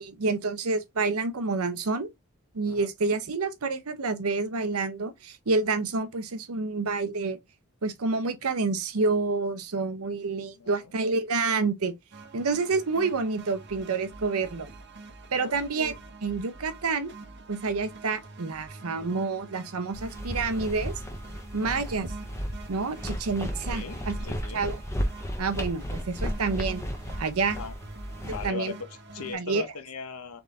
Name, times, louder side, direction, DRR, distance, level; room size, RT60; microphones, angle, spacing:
voice 1, 0.0-2.1 2.5-7.4 7.8-11.9 12.3-14.7 15.3-15.9 16.2-17.1 17.5-20.9 21.5-22.1 22.7-24.1 24.5-24.8 25.4-26.8 27.2-27.6 28.4-28.7 29.3-29.6, right 4 dB, 85° right, 0.8 m, -28 dB
voice 2, 10.6-10.9 15.3-15.6 21.6-21.9 23.7-24.6 27.6-27.7 28.2-30.4, left 5 dB, 85° left, 0.9 m, -39 dB
sound 1, 12.1-29.3, right 3 dB, 55° right, 0.8 m, -46 dB
sound 2, 19.9-28.5, equal, 10° left, 0.7 m, -34 dB
3.9 x 3.6 x 3.6 m
head